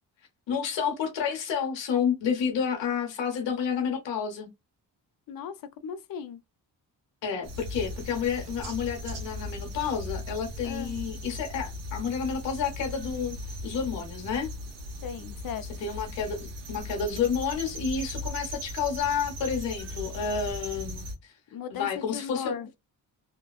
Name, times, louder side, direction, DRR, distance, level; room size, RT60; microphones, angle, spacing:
voice 1, 0.5-4.5 7.2-14.5 15.8-21.3 21.7-22.5, left 6 dB, 80° left, 1.0 m, -30 dB
voice 2, 5.3-6.4 10.6-10.9 15.0-15.9 21.5-22.7, left 7 dB, 55° left, 0.6 m, -37 dB
sound 1, 7.4-21.2, left 1 dB, 80° right, 1.0 m, -38 dB
2.7 x 2.2 x 2.3 m
supercardioid pair, 55°, 43 cm